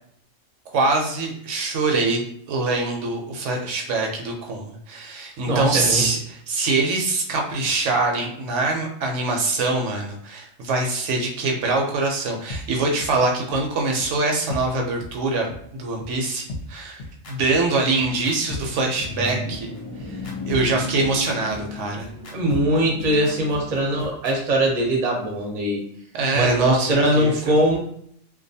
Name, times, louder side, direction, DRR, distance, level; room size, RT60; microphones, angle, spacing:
voice 1, 0.7-15.5 15.7-17.0 17.3-19.7 20.1-20.2 20.4-22.1 26.1-27.5, right 3 dB, 75° right, 1 dB, 0.9 m, -24 dB
voice 2, 5.4-6.0 22.3-25.8 26.3-27.8, right 1 dB, 45° right, -1 dB, 0.6 m, -21 dB
sound 1, 12.5-12.6 13.0-13.1 13.5-13.6 14.0-14.1 14.5-14.6 15.0-15.1 15.5-15.6 16.0-16.1 16.5-24.3, left 2 dB, 60° left, 0.7 m, -35 dB
sound 2, 18.7-24.1, left 1 dB, 25° left, 0.5 m, -35 dB
2.4 x 2.3 x 2.6 m, 0.66 s
omnidirectional pair, 1.3 m